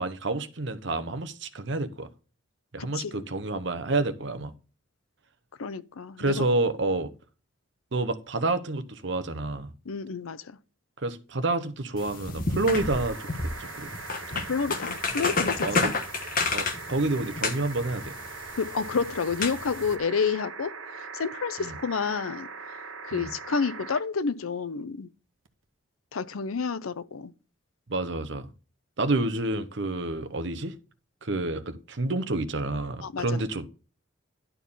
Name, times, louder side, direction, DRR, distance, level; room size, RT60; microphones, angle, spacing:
voice 1, 0.0-2.1 2.7-4.5 6.2-7.1 7.9-9.7 11.0-13.3 13.6-13.9 15.2-15.3 15.6-15.9 16.5-18.1 21.6-21.7 23.1-23.3 27.9-28.5 29.0-30.7 31.2-33.7, right 2 dB, 60° right, 0.9 m, -29 dB
voice 2, 2.8-3.2 5.6-6.4 9.9-10.6 14.3-15.8 18.6-25.1 26.1-27.3 33.0-33.4, left 5 dB, 90° left, 0.6 m, -30 dB
sound 1, 12.0-19.9, left 3 dB, 40° left, 1.4 m, -31 dB
sound 2, 12.8-24.0 25.4-25.5, right 5 dB, 85° right, 1.0 m, -41 dB
11.5 x 4.6 x 5.5 m
head